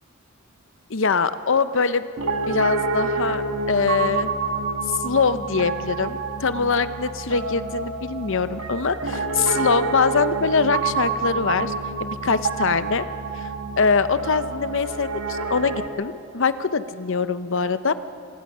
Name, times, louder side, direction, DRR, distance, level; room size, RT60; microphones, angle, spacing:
voice 1, 0.9-2.1 2.5-4.3 5.0-11.7 12.0-13.0 13.4-13.5 13.8-17.9, left 5 dB, 60° left, 13 dB, 0.8 m, -23 dB
Piano, 2.2-15.9, right 4 dB, 70° right, 1.8 m, -28 dB
26.0 x 20.0 x 5.5 m, 2.7 s
head